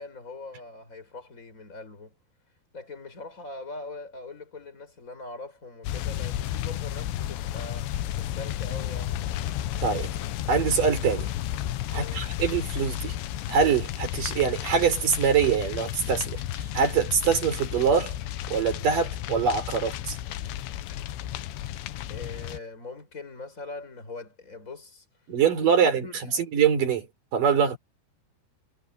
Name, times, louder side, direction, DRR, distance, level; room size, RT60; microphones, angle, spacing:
voice 1, 0.0-2.1 2.7-9.2 11.9-12.3 22.1-25.0 25.7-26.4, left 3 dB, 15° left, 6.3 m, -42 dB
sound 1, 5.8-22.6, left 12 dB, 80° left, 3.1 m, -32 dB
voice 2, 10.5-11.3 11.9-13.1 13.5-18.2 18.5-20.2 25.3-27.1 27.3-27.8, right 7 dB, 50° right, 5.7 m, -24 dB
omnidirectional pair, 5.1 m